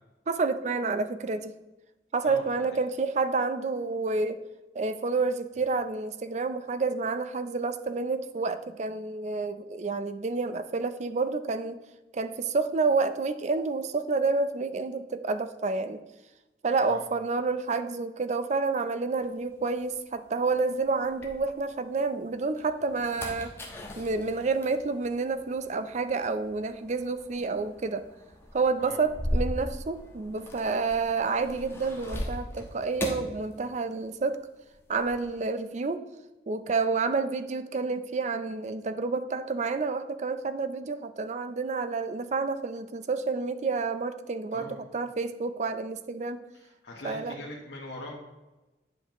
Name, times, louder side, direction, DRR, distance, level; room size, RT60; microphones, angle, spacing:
voice 1, 0.3-1.5 2.1-4.4 4.7-11.8 12.1-16.0 16.6-23.5 24.0-28.1 28.5-34.5 34.9-36.0 36.5-44.7 44.9-46.4 47.0-47.4, right 4 dB, 40° right, 11 dB, 0.4 m, -29 dB
voice 2, 2.2-2.8 16.8-17.0 24.2-24.4 28.8-29.0 44.5-44.8 46.5-48.1, left 1 dB, 80° left, -3 dB, 1.1 m, -42 dB
sound 1, 19.2-21.9 22.4-34.2 34.4-35.2, equal, 15° left, 1.1 m, -38 dB
9.7 x 5.3 x 3.0 m, 1.1 s
head